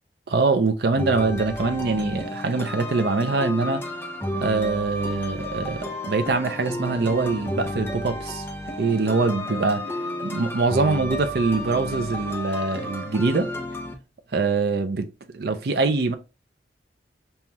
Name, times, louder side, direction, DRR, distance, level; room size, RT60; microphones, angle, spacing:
voice 1, 0.3-3.8 4.3-8.5 8.8-9.9 10.2-13.5 14.3-15.1 15.3-16.1, right 3 dB, 60° right, 0.5 m, -23 dB
sound 1, 1.0-13.9, left 1 dB, 10° left, 0.5 m, -32 dB
5.5 x 2.3 x 2.9 m
head